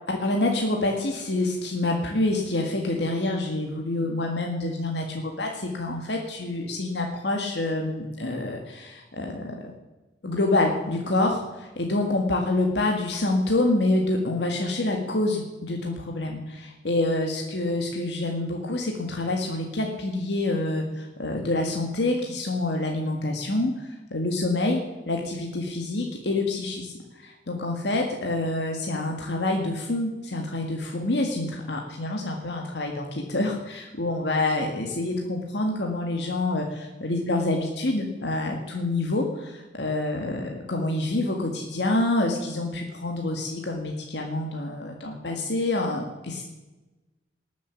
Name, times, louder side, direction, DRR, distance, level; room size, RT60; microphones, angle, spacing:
voice 1, 0.1-9.7 10.2-24.8 25.1-46.4, left 2 dB, 75° left, 1 dB, 1.8 m, -27 dB
19.0 x 7.3 x 7.3 m, 1.1 s
head